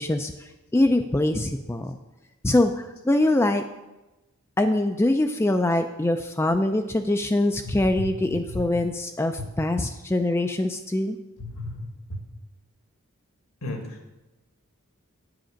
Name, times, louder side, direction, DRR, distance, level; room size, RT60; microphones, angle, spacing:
voice 1, 0.0-2.0 2.4-3.6 4.6-11.2, left 1 dB, 10° left, 6 dB, 0.3 m, -23 dB
voice 2, 11.4-12.2 13.6-13.8, left 2 dB, 75° left, 3 dB, 1.8 m, -33 dB
8.4 x 7.7 x 5.1 m, 1.0 s
head